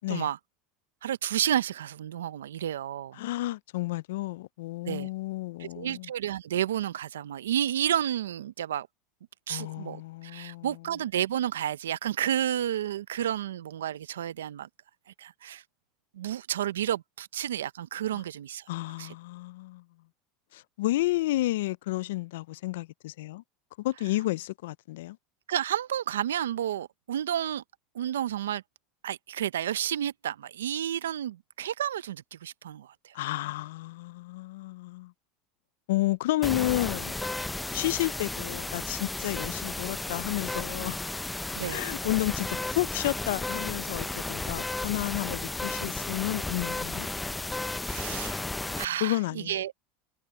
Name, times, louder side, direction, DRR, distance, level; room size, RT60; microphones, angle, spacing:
voice 1, 0.1-0.4 1.0-3.2 4.8-5.1 5.6-8.9 9.5-14.7 15.2-15.6 16.1-18.7 19.0-19.1 25.5-27.6 27.9-28.6 29.0-33.1 41.5-41.8 47.8-48.4 48.7-49.7, right 10 dB, 90° right, 0.7 m, -31 dB
voice 2, 3.2-6.1 9.5-10.7 18.7-19.8 20.5-23.4 23.8-25.2 33.1-35.1 35.9-37.1 37.7-41.0 41.7-47.1 49.0-49.6, left 17 dB, 80° left, 0.5 m, -31 dB
sound 1, 36.4-48.8, left 2 dB, 10° left, 0.6 m, -34 dB
hypercardioid pair, 100°, 0 cm